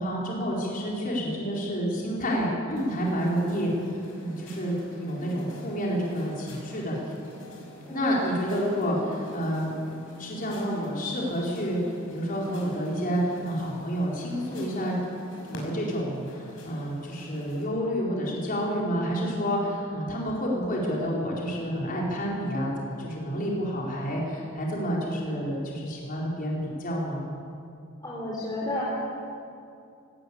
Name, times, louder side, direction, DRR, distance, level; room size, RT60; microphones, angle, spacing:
voice 1, 0.0-3.7 4.2-7.0 7.9-9.7 10.2-11.8 12.1-15.0 15.5-27.3, equal, 40° left, -3 dB, 4.4 m, -29 dB
sound 1, 2.7-17.6, left 1 dB, 75° left, 5.9 m, -47 dB
voice 2, 5.1-5.6 7.9-8.1 28.0-29.0, left 1 dB, 20° left, -6 dB, 4.0 m, -33 dB
18.5 x 17.0 x 8.6 m, 2.5 s
head